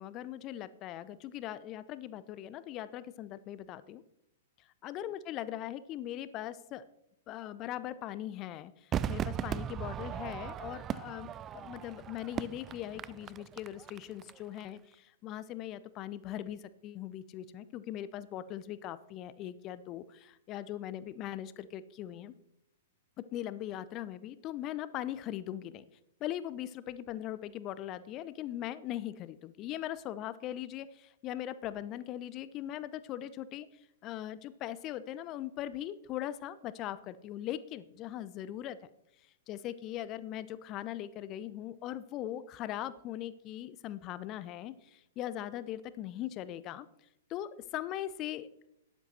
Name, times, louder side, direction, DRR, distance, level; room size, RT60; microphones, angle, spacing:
voice 1, 0.0-4.0 4.8-6.8 7.3-22.3 23.2-25.9 26.2-33.7 34.0-38.8 39.5-46.9 47.3-48.7, left 12 dB, 30° left, 16 dB, 0.7 m, -40 dB
Crowd / Fireworks, 8.9-14.3 14.6-14.7, right 9 dB, 20° right, 0.4 m, -38 dB
13.0 x 10.5 x 4.3 m, 0.82 s
figure-of-eight pair, 105°, 0 cm